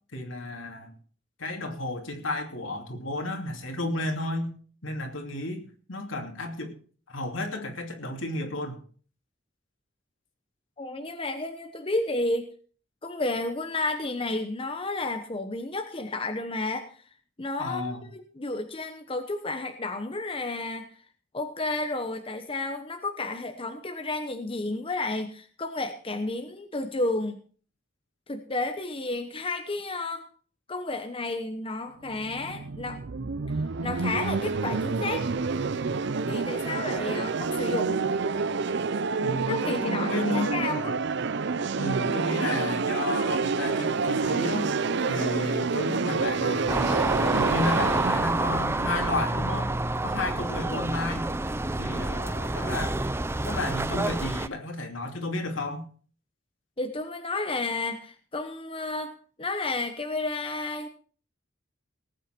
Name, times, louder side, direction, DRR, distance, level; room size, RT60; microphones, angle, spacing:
voice 1, 0.1-0.9 1.4-4.5 4.8-5.6 5.9-6.7 7.1-8.8 17.6-18.1 39.2-40.6 41.8-44.7 45.1-47.0 47.3-49.7 50.0-51.3 51.8-53.0 53.4-55.8, left 2 dB, 70° left, 3 dB, 2.7 m, -32 dB
voice 2, 10.8-12.5 13.0-16.9 17.4-20.9 21.3-27.4 28.3-30.3 30.7-33.0 33.8-35.3 36.3-38.0 39.5-40.9 56.8-59.1 59.4-60.9, left 2 dB, 25° left, 6 dB, 1.0 m, -31 dB
sound 1, 32.1-49.9, right 4 dB, 60° right, 0.6 m, -28 dB
sound 2, 46.7-54.5, right 2 dB, 10° right, 0.5 m, -28 dB
19.0 x 9.0 x 4.5 m, 0.44 s
head